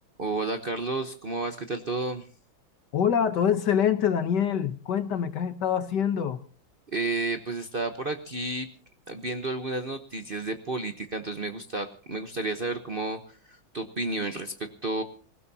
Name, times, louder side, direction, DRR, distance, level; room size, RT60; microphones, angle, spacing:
voice 1, 0.2-2.3 6.9-8.7 9.1-13.2 13.5-15.0, right 2 dB, 40° right, 7 dB, 0.8 m, -31 dB
voice 2, 2.9-6.4, left 8 dB, 65° left, 10 dB, 1.5 m, -25 dB
25.5 x 16.0 x 2.8 m, 0.41 s
omnidirectional pair, 2.2 m